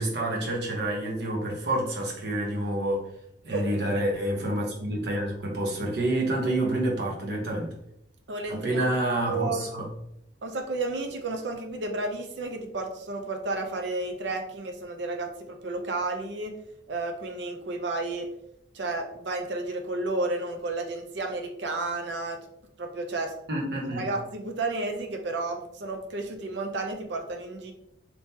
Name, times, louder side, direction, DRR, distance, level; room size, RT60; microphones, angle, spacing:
voice 1, 0.0-3.1 3.4-7.7 8.5-9.9 23.5-24.1, right 1 dB, 65° right, -2 dB, 1.0 m, -28 dB
voice 2, 8.3-8.9 9.3-9.7 10.4-16.5 16.9-18.3 18.7-22.4 22.8-23.3 24.0-27.7, right 2 dB, 85° right, 4 dB, 0.6 m, -32 dB
3.5 x 2.9 x 2.7 m, 0.77 s
head